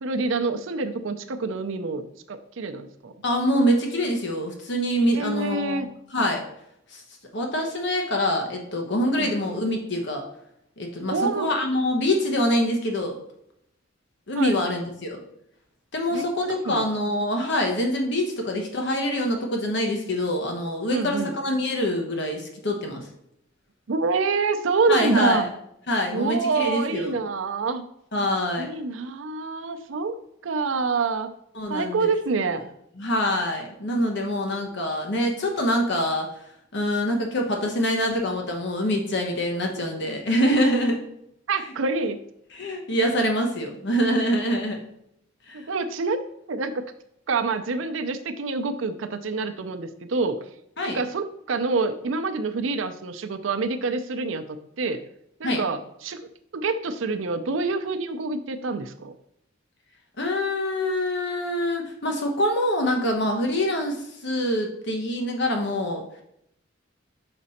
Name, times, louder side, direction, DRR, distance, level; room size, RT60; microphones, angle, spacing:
voice 1, 0.0-2.0 2.3-3.1 5.1-5.9 9.2-9.3 11.1-11.5 14.3-14.6 16.1-16.8 20.9-21.3 23.9-25.4 26.1-27.8 28.6-30.2 30.4-31.3 31.7-32.6 39.8-39.9 41.5-42.2 45.5-46.2 46.5-46.7 47.3-50.4 50.8-55.0 55.4-56.2 56.5-59.1, right 4 dB, 75° right, 7 dB, 0.5 m, -27 dB
voice 2, 3.2-6.4 6.9-7.0 7.3-10.2 10.8-13.2 14.3-15.2 15.9-23.1 24.9-25.5 25.9-27.1 28.1-28.7 31.5-32.1 33.0-41.0 42.5-44.8 45.5-45.7 50.8-51.0 55.4-55.6 60.2-66.0, equal, 65° left, 2 dB, 1.0 m, -25 dB
6.0 x 5.1 x 4.2 m, 0.75 s
head